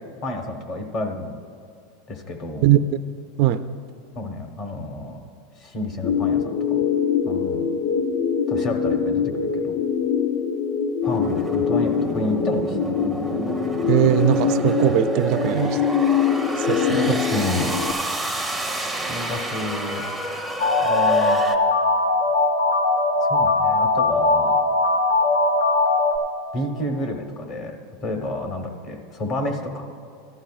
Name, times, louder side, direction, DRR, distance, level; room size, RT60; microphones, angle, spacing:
voice 1, 0.2-1.4 2.1-2.7 4.1-5.2 5.6-6.9 7.2-7.7 8.5-9.8 11.0-12.8 16.9-17.8 18.6-18.7 19.1-20.0 20.8-21.5 23.3-24.6 26.5-27.8 28.0-29.8, left 1 dB, 35° left, 4 dB, 1.1 m, -30 dB
voice 2, 2.6-3.0 3.4-3.6 13.9-15.9 16.6-17.2, right 11 dB, 50° right, 10 dB, 0.4 m, -20 dB
sound 1, 6.0-17.9, left 7 dB, 60° left, 0.6 m, -23 dB
sound 2, 11.0-21.6, right 2 dB, ahead, 0.6 m, -29 dB
sound 3, 20.6-26.2, left 2 dB, 90° left, 1.0 m, -20 dB
15.0 x 11.5 x 2.4 m, 2.5 s
supercardioid pair, 155°, 0 cm